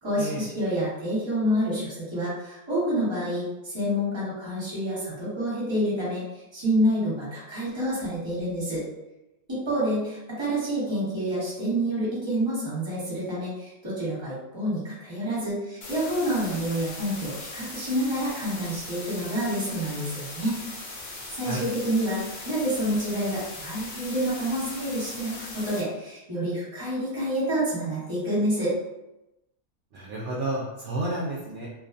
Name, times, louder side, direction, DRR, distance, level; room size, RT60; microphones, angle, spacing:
voice 1, 0.0-8.8 9.5-20.6 21.4-28.7, equal, 20° right, -8 dB, 1.0 m, -28 dB
sound 1, 15.8-25.8, left 2 dB, 60° left, 0.7 m, -39 dB
voice 2, 29.9-31.7, right 2 dB, 70° right, -4 dB, 0.7 m, -31 dB
2.6 x 2.2 x 2.5 m, 0.95 s
omnidirectional pair, 1.7 m